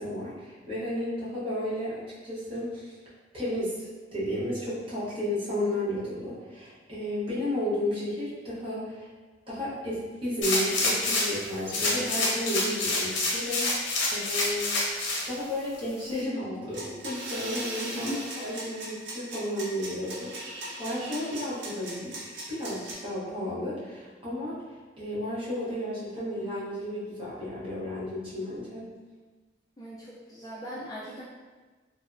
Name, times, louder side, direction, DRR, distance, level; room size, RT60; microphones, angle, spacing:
voice 1, 0.0-2.9 3.3-9.1 9.5-14.7 15.3-24.6 25.0-28.9, left 1 dB, 30° right, -9 dB, 0.8 m, -33 dB
sound 1, 10.4-11.4 11.7-15.2 15.7-15.8, left 2 dB, 75° left, 0.6 m, -27 dB
sound 2, 16.7-22.9, right 1 dB, 70° right, 0.7 m, -38 dB
voice 2, 17.9-18.3 29.8-31.2, equal, 20° left, -6 dB, 0.3 m, -38 dB
3.2 x 2.0 x 2.4 m, 1.3 s
head